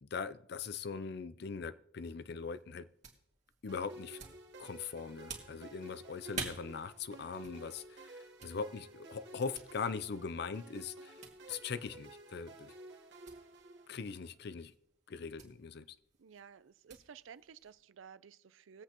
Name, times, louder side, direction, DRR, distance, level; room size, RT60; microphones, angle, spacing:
voice 1, 0.0-2.9 3.6-4.2 4.6-11.2 11.5-12.7 13.9-14.7 15.1-16.0, left 5 dB, 55° left, 0.5 m, -41 dB
sound 1, 2.2-17.8, right 5 dB, 35° right, 1.9 m, -52 dB
sound 2, 3.7-14.4, right 2 dB, 60° right, 1.2 m, -53 dB
voice 2, 16.2-18.8, right 7 dB, 90° right, 0.5 m, -54 dB
20.5 x 8.0 x 2.9 m
head